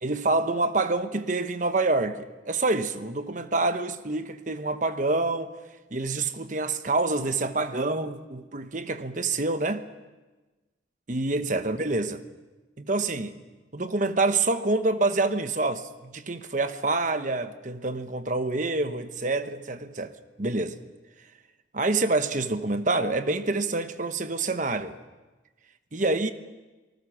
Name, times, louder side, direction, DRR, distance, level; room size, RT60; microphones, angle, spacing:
voice 1, 0.0-5.5 5.9-9.9 11.1-12.2 12.8-13.3 13.7-20.8 21.7-25.0 25.9-26.3, right 2 dB, 40° right, 1.0 m, -27 dB
27.5 x 19.5 x 6.1 m
head